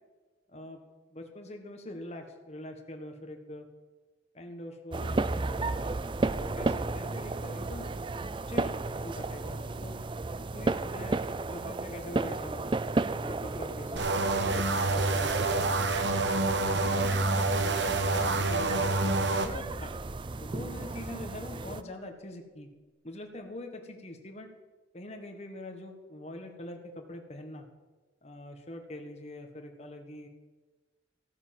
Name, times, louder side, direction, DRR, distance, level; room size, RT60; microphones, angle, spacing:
voice 1, 0.5-0.8 1.1-3.7 4.3-5.2 6.4-7.9 8.5-10.0 10.4-12.7 13.1-14.3 14.8-15.8 16.6-19.9 20.4-22.7 23.0-24.5 24.9-27.7 28.2-30.3, left 1 dB, 35° left, 4 dB, 1.6 m, -44 dB
sound 1, 4.9-21.8, right 2 dB, 25° right, 0.4 m, -34 dB
sound 2, 14.0-19.5, right 2 dB, 75° right, 1.2 m, -27 dB
14.5 x 9.4 x 7.7 m, 1.3 s
head